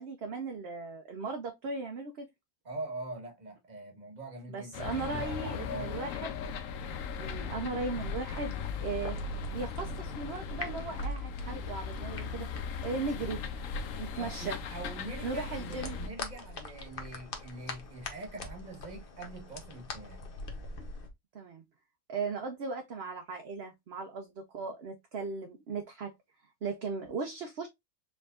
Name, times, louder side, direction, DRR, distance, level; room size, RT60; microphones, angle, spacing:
voice 1, 0.0-2.3 4.5-6.4 7.2-9.2 9.5-12.5 12.8-13.4 14.0-14.6 15.2-16.0 21.3-21.6 22.1-26.1 26.6-27.7, right 4 dB, 55° right, 0.9 m, -37 dB
voice 2, 2.6-6.4 14.1-20.2, right 2 dB, 35° right, 1.4 m, -44 dB
sound 1, 4.7-16.1, left 5 dB, 75° left, 1.0 m, -38 dB
sound 2, 8.0-21.1, left 3 dB, 45° left, 1.0 m, -44 dB
4.9 x 3.5 x 2.4 m
omnidirectional pair, 1.4 m